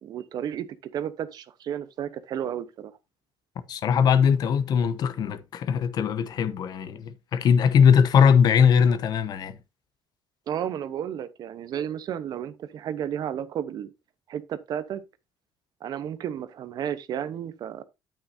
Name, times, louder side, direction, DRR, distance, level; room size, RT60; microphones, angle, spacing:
voice 1, 0.0-2.9 10.5-13.9 14.3-15.0 15.8-17.8, right 9 dB, 60° right, 0.9 m, -32 dB
voice 2, 3.7-9.6, left 7 dB, 60° left, 1.0 m, -20 dB
8.9 x 8.7 x 2.7 m
cardioid pair, 90°, 8 cm